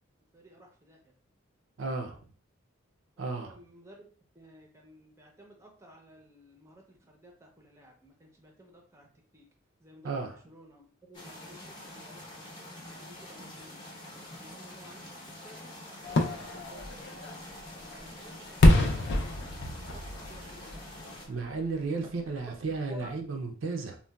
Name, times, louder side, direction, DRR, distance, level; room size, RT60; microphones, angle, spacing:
voice 1, 0.3-1.0 3.2-4.0 4.4-9.1 9.3-9.4 9.8-13.8 14.4-15.0 15.4-16.9 17.2-17.4 17.8-20.9 22.9-23.2, equal, 15° right, 0.6 m, -54 dB
voice 2, 1.8-2.2 3.2-3.6 10.0-10.4 21.3-24.0, right 4 dB, 65° right, 0.5 m, -34 dB
sound 1, 11.1-21.3, left 1 dB, 20° left, 0.8 m, -46 dB
Fireworks, 16.0-21.8 22.2-22.3, left 1 dB, 60° left, 0.4 m, -27 dB
3.8 x 2.2 x 2.2 m
head